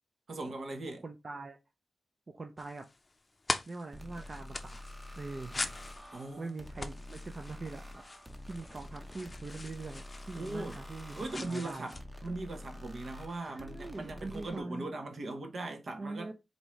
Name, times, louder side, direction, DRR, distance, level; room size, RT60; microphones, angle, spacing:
voice 1, 0.3-1.0 6.1-6.6 10.3-10.8 11.1-12.0 12.2-16.3, right 2 dB, 65° right, 0.9 m, -39 dB
voice 2, 1.0-1.6 2.3-2.9 3.7-4.8 5.1-5.7 6.4-8.0 8.5-11.9 13.5-14.9 16.0-16.3, right 3 dB, 45° right, 0.5 m, -43 dB
sound 1, 2.6-12.0, left 2 dB, 35° left, 0.5 m, -43 dB
sound 2, 3.9-14.6, left 1 dB, 10° right, 0.8 m, -48 dB
4.6 x 2.7 x 3.0 m
cardioid pair, 75°, 0 cm